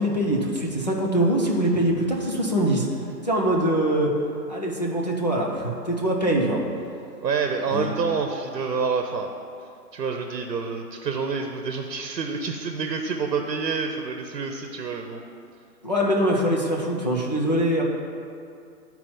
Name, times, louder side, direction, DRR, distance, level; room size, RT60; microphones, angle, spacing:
voice 1, 0.0-2.9 3.2-4.1 4.5-6.6 7.7-7.9 15.8-17.8, right 1 dB, 30° left, -3 dB, 0.4 m, -23 dB
voice 2, 7.2-9.3 9.9-15.2, right 5 dB, 75° right, 4 dB, 0.9 m, -28 dB
11.5 x 4.3 x 4.2 m, 2.5 s
hypercardioid pair, 155°, 50 cm